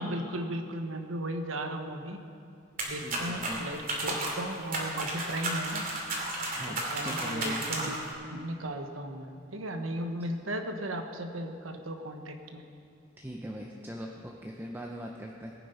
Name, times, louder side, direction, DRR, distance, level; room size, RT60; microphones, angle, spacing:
voice 1, 0.0-2.2 2.8-5.9 6.7-12.6, right 1 dB, 90° right, 6 dB, 1.2 m, -36 dB
sound 1, 2.8-8.1, right 2 dB, 45° right, 2.6 m, -33 dB
voice 2, 3.0-3.6 6.5-7.9 13.2-15.5, equal, 10° right, 0 dB, 0.7 m, -40 dB
19.5 x 9.3 x 5.5 m, 2.5 s
head